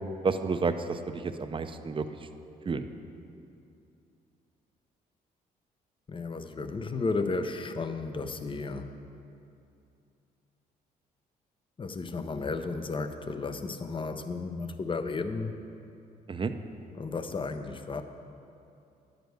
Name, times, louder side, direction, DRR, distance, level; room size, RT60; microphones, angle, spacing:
voice 1, 0.2-2.2 2.7-2.9 16.3-16.5, right 4 dB, 30° right, 8 dB, 0.6 m, -30 dB
voice 2, 6.1-9.0 11.8-15.6 16.9-18.0, left 3 dB, 30° left, 8 dB, 0.7 m, -33 dB
10.5 x 5.2 x 7.7 m, 2.6 s
cardioid pair, 75°, 17 cm